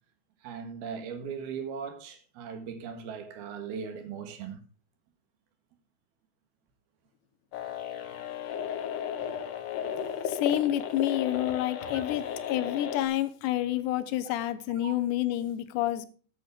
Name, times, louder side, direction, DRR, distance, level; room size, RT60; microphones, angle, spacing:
voice 1, 0.4-4.6 11.8-12.1 14.2-14.3 14.8-14.9, right 6 dB, 70° right, 3.3 m, -39 dB
sound 1, 7.5-13.1, left 8 dB, 65° left, 2.3 m, -34 dB
voice 2, 10.3-16.1, left 13 dB, 85° left, 3.1 m, -29 dB
14.0 x 9.5 x 3.4 m
omnidirectional pair, 4.9 m